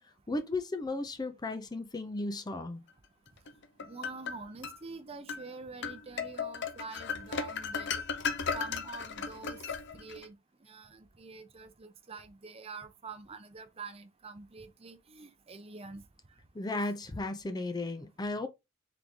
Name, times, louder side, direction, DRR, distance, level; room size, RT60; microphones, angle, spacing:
voice 1, 0.3-2.8 16.5-18.5, left 2 dB, 20° left, 0.5 m, -35 dB
sound 1, 3.5-4.8 5.3-5.5 5.8-10.3, left 5 dB, 60° left, 0.7 m, -36 dB
voice 2, 3.8-9.6 9.9-10.4 10.6-16.0, right 4 dB, 30° right, 0.6 m, -46 dB
3.9 x 3.1 x 3.4 m
head